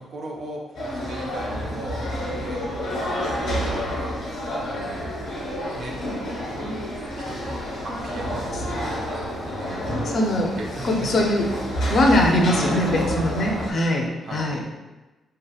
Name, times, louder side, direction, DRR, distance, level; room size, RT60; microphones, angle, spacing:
voice 1, 0.0-2.1 2.3-2.6 3.4-4.1 4.7-5.1 5.8-6.0 7.2-8.5 9.4-9.9 10.2-11.1 12.1-13.1 14.2-14.5, right 1 dB, 50° right, 0 dB, 0.5 m, -36 dB
sound 1, 0.7-13.7, equal, 85° left, 0.9 m, -29 dB
voice 2, 10.0-10.5 10.8-11.5 11.9-14.6, left 1 dB, 50° left, 1 dB, 0.4 m, -21 dB
2.7 x 2.4 x 2.3 m, 1.1 s
cardioid pair, 115°, 0 cm